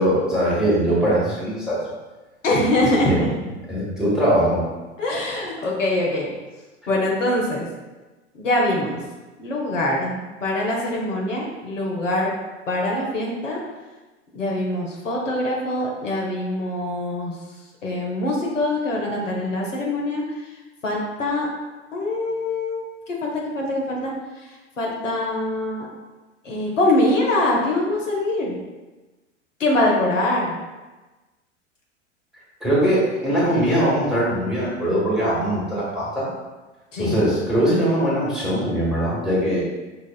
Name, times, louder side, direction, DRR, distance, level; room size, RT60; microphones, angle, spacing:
voice 1, 0.0-1.9 3.0-3.2 3.7-4.6 32.6-36.3 37.0-39.6, right 1 dB, ahead, -9 dB, 1.3 m, -21 dB
voice 2, 2.4-3.5 5.0-6.3 6.9-7.7 8.4-9.0 9.4-12.3 12.7-13.6 14.3-17.3 17.8-20.2 20.8-21.5 21.9-24.1 24.8-25.9 26.4-28.5 29.6-30.5 36.9-37.2, left 1 dB, 80° left, -2 dB, 0.9 m, -23 dB
5.2 x 2.4 x 2.3 m, 1.2 s
figure-of-eight pair, 90°, 37 cm